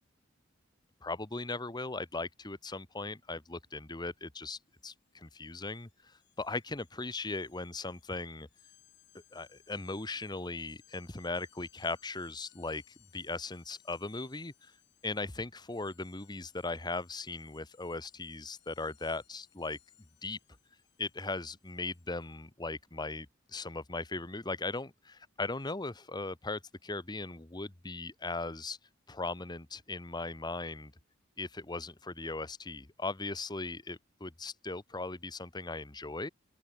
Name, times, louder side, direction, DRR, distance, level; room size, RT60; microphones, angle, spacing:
voice 1, 1.0-8.5 9.3-12.8 13.1-14.7 15.0-19.8 20.2-20.4 21.0-28.8 29.1-30.9 31.4-36.3, left 3 dB, 20° left, 1.2 m, -38 dB
sound 1, 4.7-4.9 5.2-22.4, left 14 dB, 60° left, 5.0 m, -66 dB
open air
head